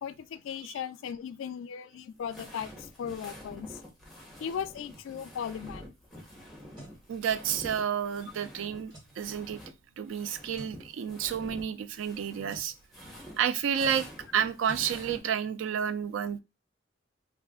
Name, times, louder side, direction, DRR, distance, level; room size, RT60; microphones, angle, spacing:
voice 1, 0.0-3.8 4.4-5.8, left 8 dB, 80° left, 0.3 m, -37 dB
sound 1, 2.1-9.7 10.0-15.2, left 1 dB, ahead, 0.7 m, -47 dB
sound 2, 6.5-7.0 8.9-9.2 10.5-10.8 12.5-12.7 14.7-14.9, right 2 dB, 25° right, 1.3 m, -49 dB
voice 2, 7.1-9.6 10.0-12.7 13.4-14.1 14.3-16.4, right 8 dB, 80° right, 0.3 m, -30 dB
2.5 x 2.3 x 3.6 m
head